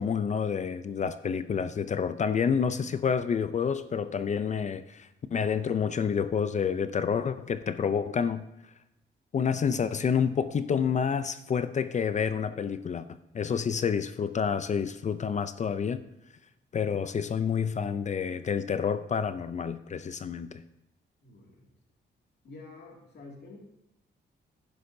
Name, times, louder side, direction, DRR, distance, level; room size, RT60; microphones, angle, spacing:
voice 1, 0.0-8.4 9.3-16.0 16.7-20.6, left 6 dB, 40° left, 12 dB, 0.5 m, -29 dB
voice 2, 21.2-21.7 22.4-23.6, left 3 dB, 60° left, 0 dB, 2.3 m, -48 dB
11.5 x 10.5 x 2.7 m, 0.84 s
cardioid pair, 125°, 19 cm